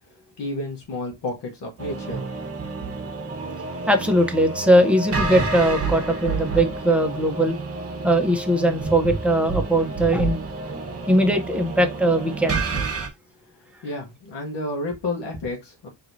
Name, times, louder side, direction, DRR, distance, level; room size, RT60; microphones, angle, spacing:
voice 1, 0.4-2.2 13.8-15.9, left 2 dB, 70° left, 1.3 m, -30 dB
sound 1, 1.8-13.1, right 3 dB, 35° right, 1.0 m, -29 dB
voice 2, 3.9-7.6 8.0-10.4 11.1-12.6, right 1 dB, 5° right, 0.8 m, -20 dB
4.5 x 3.0 x 2.7 m
cardioid pair, 95°, 42 cm